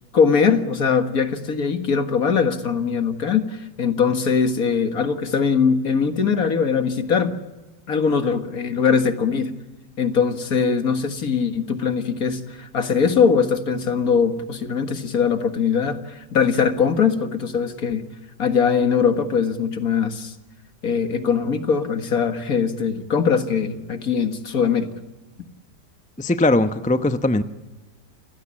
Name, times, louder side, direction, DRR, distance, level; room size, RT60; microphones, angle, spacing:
voice 1, 0.1-7.3 7.9-9.5 10.0-18.1 18.4-20.3 20.8-24.9, left 6 dB, 55° left, 7 dB, 2.1 m, -21 dB
voice 2, 26.2-27.4, left 2 dB, 10° left, 10 dB, 0.4 m, -19 dB
29.0 x 16.0 x 8.6 m, 1.2 s
omnidirectional pair, 1.8 m